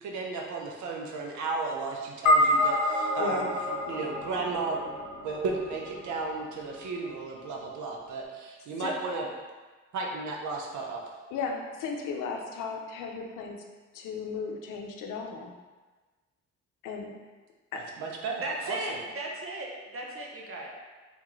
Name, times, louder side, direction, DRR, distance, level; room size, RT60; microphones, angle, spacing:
voice 1, 0.0-3.5 3.9-4.8 5.2-9.3 9.9-11.0 18.0-19.0, right 3 dB, 75° right, 0 dB, 0.8 m, -34 dB
sound 1, 2.3-6.8, left 1 dB, 70° left, 1.0 m, -28 dB
voice 2, 3.2-3.5 8.8-8.9 11.3-13.6 13.9-15.5 16.8-17.2 17.7-17.8, left 5 dB, 90° left, 2 dB, 0.6 m, -35 dB
voice 3, 18.4-20.7, right 1 dB, 45° right, -2 dB, 1.0 m, -36 dB
3.6 x 3.6 x 3.1 m, 1.3 s
cardioid pair, 90°, 30 cm